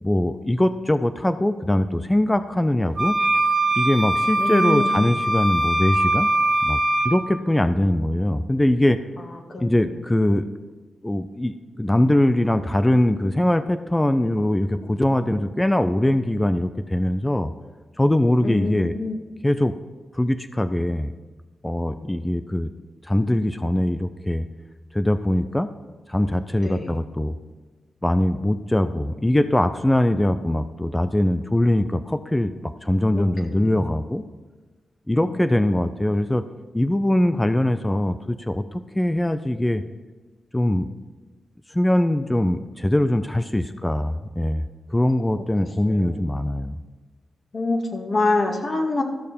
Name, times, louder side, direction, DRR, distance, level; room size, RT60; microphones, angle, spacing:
voice 1, 0.0-3.2 3.8-6.3 6.6-6.8 7.0-9.0 9.6-10.5 11.0-17.5 18.0-18.9 19.4-19.7 20.1-21.1 21.6-22.7 23.0-24.4 24.9-25.7 26.1-27.3 28.0-32.5 32.8-34.2 35.1-36.4 36.7-39.8 40.5-40.9 41.7-44.6 44.9-46.8, left 1 dB, 15° left, 11 dB, 0.6 m, -22 dB
sound 1, 3.0-7.1, right 1 dB, 50° right, 1.8 m, -21 dB
voice 2, 4.4-5.0 9.5-9.7 18.4-19.2 26.6-27.0 33.1-33.7 35.2-35.8 45.9-46.3 47.5-49.0, left 3 dB, 55° left, 2 dB, 2.0 m, -26 dB
14.0 x 6.5 x 5.3 m, 1.3 s
cardioid pair, 55°, 0 cm